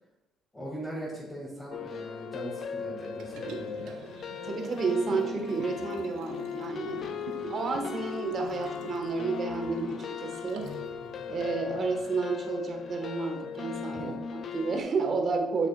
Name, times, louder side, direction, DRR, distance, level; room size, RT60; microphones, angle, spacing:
voice 1, 0.5-3.9 13.9-14.2, right 1 dB, 15° left, -7 dB, 2.2 m, -40 dB
sound 1, 1.7-14.8, left 7 dB, 50° left, 0.4 m, -38 dB
sound 2, 3.1-12.0, left 2 dB, 70° left, 2.2 m, -53 dB
Liquid, 3.2-10.9 11.3-11.4, right 6 dB, 80° right, 0.8 m, -45 dB
voice 2, 4.4-7.0 7.5-10.7 11.3-15.7, right 4 dB, 40° right, 3 dB, 1.3 m, -31 dB
8.3 x 6.6 x 2.3 m, 0.99 s
cardioid pair, 105°, 0 cm